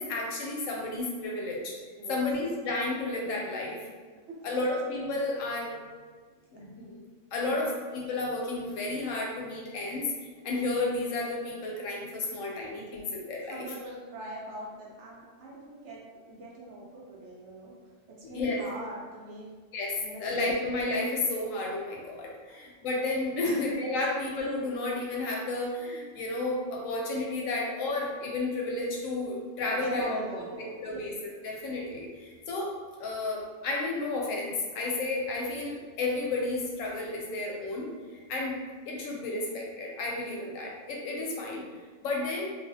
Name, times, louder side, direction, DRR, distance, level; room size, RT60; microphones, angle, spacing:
voice 1, 0.0-1.8 2.1-3.9 4.4-5.8 6.5-7.0 7.3-10.1 10.4-13.7 18.2-18.6 19.7-38.6 38.9-41.6 42.0-42.4, left 2 dB, 85° left, -2 dB, 1.0 m, -32 dB
voice 2, 13.5-16.0 16.3-17.7 18.3-19.5 20.0-20.2 20.5-20.6 23.4-23.6 29.6-30.8, right 1 dB, 70° right, -4 dB, 0.9 m, -41 dB
2.4 x 2.3 x 2.6 m, 1.5 s
omnidirectional pair, 1.3 m